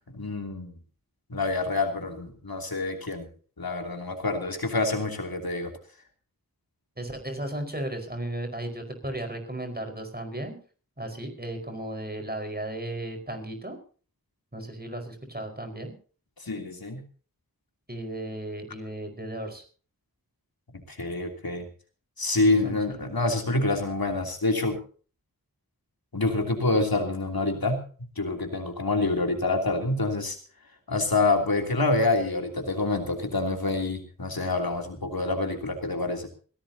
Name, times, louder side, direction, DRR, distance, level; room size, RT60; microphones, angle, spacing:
voice 1, 0.1-0.8 1.3-3.3 3.6-5.7 16.4-17.0 20.9-21.7 22.2-24.8 26.1-27.8 28.2-30.4 30.9-36.3, left 2 dB, 80° left, 3 dB, 3.1 m, -27 dB
voice 2, 7.0-10.6 11.0-13.8 14.5-15.9 17.9-19.6 22.4-23.0, right 1 dB, 25° right, 5 dB, 4.9 m, -35 dB
22.0 x 16.5 x 2.8 m, 0.40 s
wide cardioid pair, 50°, 35 cm